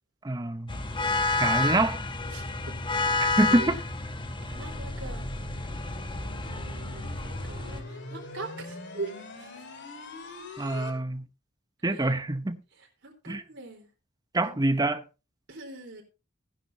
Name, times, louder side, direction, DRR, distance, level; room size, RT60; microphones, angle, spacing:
voice 1, 0.2-0.7 1.4-2.0 3.2-3.8 10.6-11.2 11.8-12.6 13.3-13.4 14.3-15.0, right 2 dB, 20° right, 0.8 m, -26 dB
sound 1, 0.7-7.8, left 3 dB, 25° left, 0.9 m, -30 dB
voice 2, 2.3-3.0 3.5-3.8 4.4-5.3 6.4-9.6 11.9-12.1 12.7-13.9 14.4-14.7 15.5-16.0, right 3 dB, 60° right, 3.9 m, -42 dB
sound 2, 4.5-10.9, left 2 dB, 60° left, 2.2 m, -42 dB
16.0 x 10.0 x 2.8 m
head